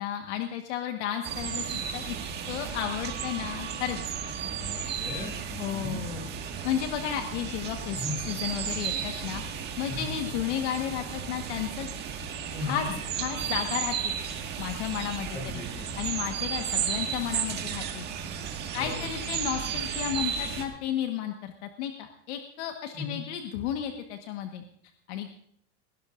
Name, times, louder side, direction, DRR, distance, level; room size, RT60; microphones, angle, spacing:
voice 1, 0.0-2.2 2.5-4.0 5.6-6.3 6.6-8.0 8.3-9.4 9.8-11.9 12.6-12.8 13.2-14.1 14.6-18.3 18.7-24.6 25.1-25.3, left 10 dB, 70° left, 5 dB, 1.5 m, -33 dB
sound 1, 1.2-20.6, right 7 dB, 30° right, 1.8 m, -34 dB
voice 2, 4.4-6.0 7.9-8.2 9.9-10.1 12.5-13.0 15.3-15.9 18.8-19.1 22.9-23.2, left 3 dB, 25° left, -1 dB, 7.9 m, -37 dB
21.0 x 18.0 x 2.5 m, 0.69 s
supercardioid pair, 170°, 36 cm